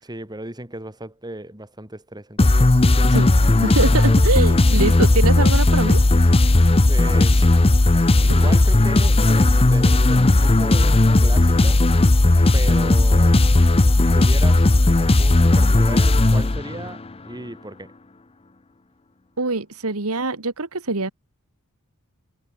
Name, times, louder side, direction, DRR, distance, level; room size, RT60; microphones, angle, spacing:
voice 1, 0.0-3.3 6.9-7.5 8.2-11.8 12.5-13.5 13.7-14.7 15.2-17.9, right 1 dB, 20° right, 5.0 m, -36 dB
sound 1, 2.4-17.0, left 2 dB, 25° left, 0.7 m, -15 dB
voice 2, 3.6-6.0 19.4-21.1, right 3 dB, 70° right, 1.9 m, -23 dB
head